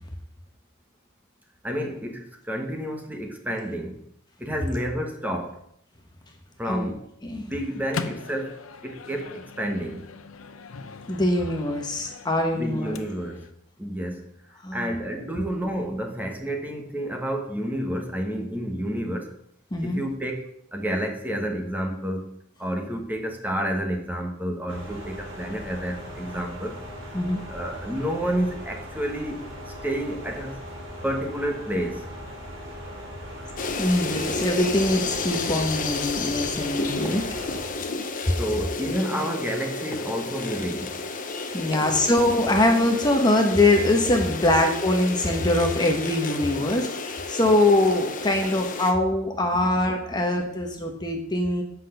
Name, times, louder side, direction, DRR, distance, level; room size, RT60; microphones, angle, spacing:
voice 1, 1.6-4.0 4.4-5.6 6.6-7.0 7.3-8.6 8.8-10.0 12.5-13.5 13.8-14.2 14.5-19.3 19.8-22.3 22.6-26.8 27.5-30.6 31.0-32.1 38.2-40.9 41.7-41.8, equal, 10° right, 3 dB, 1.3 m, -30 dB
Microwave oven, 7.5-13.5, left 4 dB, 85° left, 0.7 m, -40 dB
voice 2, 11.1-13.0 14.6-14.9 15.4-15.5 19.7-20.0 27.1-27.4 33.8-37.2 41.5-51.6, left 1 dB, 20° left, 2 dB, 1.0 m, -23 dB
sound 1, 24.7-37.7, equal, 65° right, 3.5 m, -39 dB
sound 2, 33.6-48.9, left 3 dB, 40° left, 1.0 m, -32 dB
8.1 x 5.9 x 6.6 m, 0.72 s
head